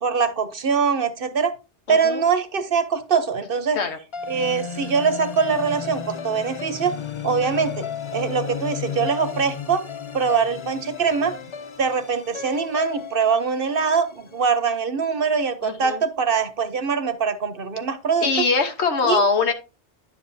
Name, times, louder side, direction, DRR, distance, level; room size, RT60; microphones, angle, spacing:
voice 1, 0.0-1.5 1.9-3.8 4.3-6.9 7.2-7.9 8.1-9.8 10.1-11.3 11.8-18.5 19.0-19.2, right 5 dB, 55° right, 11 dB, 1.0 m, -23 dB
voice 2, 1.9-2.2 3.7-4.0 15.6-16.0 18.2-19.5, left 4 dB, 70° left, 7 dB, 1.3 m, -22 dB
sound 1, 4.1-14.4, left 7 dB, 40° left, 0.4 m, -34 dB
10.0 x 7.1 x 2.7 m, 0.30 s
omnidirectional pair, 1.2 m